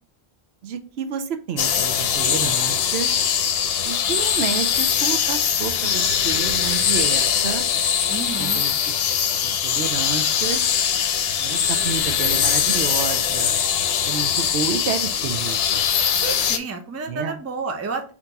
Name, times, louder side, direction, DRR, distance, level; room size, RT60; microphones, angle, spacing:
voice 1, 0.6-3.2 3.8-7.6 8.4-10.8 11.4-13.6 14.0-15.8 17.1-17.4, right 7 dB, 80° right, 8 dB, 0.8 m, -30 dB
sound 1, 1.6-16.6, left 8 dB, 70° left, 0.8 m, -21 dB
voice 2, 8.1-8.6 16.1-18.1, right 4 dB, 20° right, 6 dB, 0.4 m, -30 dB
4.4 x 2.9 x 3.9 m, 0.38 s
omnidirectional pair, 1.1 m